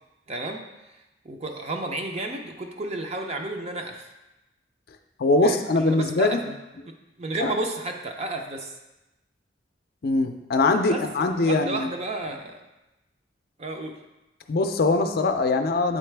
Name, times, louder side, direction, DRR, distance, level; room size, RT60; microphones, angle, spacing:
voice 1, 0.3-0.6 1.2-4.1 5.4-6.5 6.9-8.8 10.9-12.6 13.6-13.9, right 2 dB, 35° right, 3 dB, 0.6 m, -32 dB
voice 2, 5.2-6.4 7.4-7.5 10.0-11.9 14.5-16.0, left 3 dB, 55° left, 6 dB, 0.5 m, -22 dB
7.4 x 3.9 x 3.4 m, 0.99 s
head